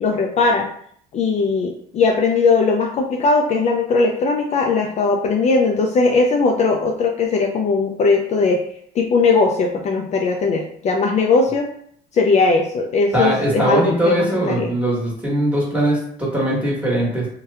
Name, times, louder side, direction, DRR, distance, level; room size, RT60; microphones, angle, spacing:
voice 1, 0.0-0.7 1.1-8.6 9.0-11.7 12.1-14.7, left 4 dB, 45° left, 2 dB, 0.4 m, -19 dB
voice 2, 13.1-17.3, right 1 dB, 10° right, -5 dB, 1.4 m, -20 dB
2.7 x 2.2 x 3.4 m, 0.64 s
cardioid pair, 110°, 17 cm